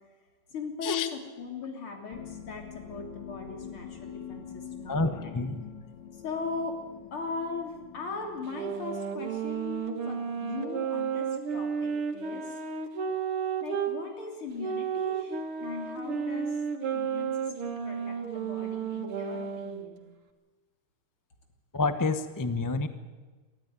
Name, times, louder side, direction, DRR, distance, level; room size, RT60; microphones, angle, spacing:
voice 1, 0.5-5.3 6.1-6.8 7.1-12.6 13.6-20.0, left 4 dB, 75° left, 2 dB, 4.0 m, -39 dB
sound 1, 2.1-8.8, left 8 dB, 55° left, 2.5 m, -45 dB
voice 2, 4.9-5.6 21.7-22.9, left 3 dB, 15° left, 10 dB, 0.6 m, -28 dB
sound 2, 8.5-14.0 14.6-19.8, right 7 dB, 80° right, 2.6 m, -32 dB
23.5 x 14.0 x 9.5 m, 1.3 s
omnidirectional pair, 2.4 m